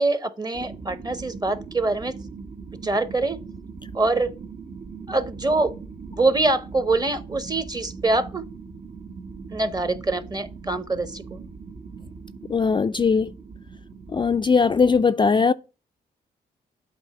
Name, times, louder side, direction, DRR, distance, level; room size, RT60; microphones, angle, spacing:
voice 1, 0.0-2.2 2.8-3.4 3.9-4.3 5.1-5.7 6.1-8.5 9.5-11.4, right 2 dB, 25° right, 1.0 m, -24 dB
sound 1, 0.5-15.0, right 5 dB, 50° right, 0.9 m, -40 dB
voice 2, 12.5-13.3 14.1-15.5, left 5 dB, 30° left, 0.3 m, -19 dB
7.9 x 2.9 x 5.7 m
cardioid pair, 60°, 17 cm